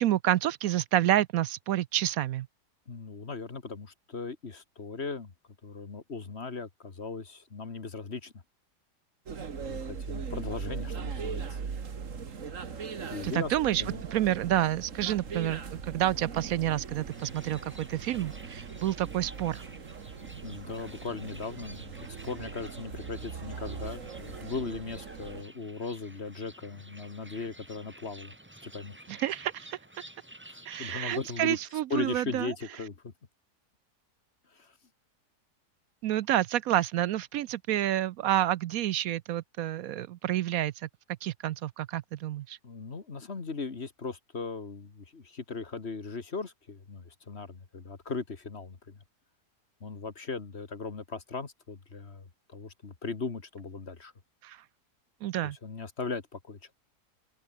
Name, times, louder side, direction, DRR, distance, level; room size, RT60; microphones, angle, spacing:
voice 1, 0.0-2.5 13.2-13.8 14.1-19.6 29.1-29.8 30.7-32.5 36.0-40.9 41.2-42.6 54.4-54.6 55.2-55.6, right 13 dB, 70° right, 0.9 m, -29 dB
voice 2, 2.9-5.3 5.6-8.3 9.6-11.6 13.1-13.5 13.8-14.0 20.4-28.3 28.6-29.0 30.5-31.6 31.9-33.1 34.5-34.7 42.6-49.0 49.8-54.1 55.6-56.7, left 4 dB, 40° left, 2.0 m, -38 dB
sound 1, 9.3-25.4, right 6 dB, 55° right, 2.0 m, -40 dB
sound 2, 14.3-21.8, right 3 dB, 35° right, 3.1 m, -56 dB
sound 3, 17.1-31.7, right 1 dB, 5° right, 1.6 m, -52 dB
open air
omnidirectional pair, 1.7 m